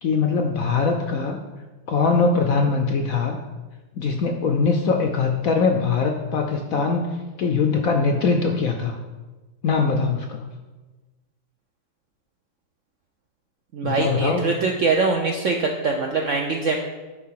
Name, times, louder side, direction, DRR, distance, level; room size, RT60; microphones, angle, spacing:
voice 1, 0.0-1.4 1.9-3.4 3.9-7.1 7.4-9.0 9.6-10.4 13.8-14.5, left 4 dB, 70° left, 4 dB, 0.8 m, -22 dB
voice 2, 13.7-16.8, right 4 dB, 70° right, 2 dB, 0.7 m, -23 dB
9.4 x 3.6 x 5.7 m, 1.2 s
omnidirectional pair, 2.0 m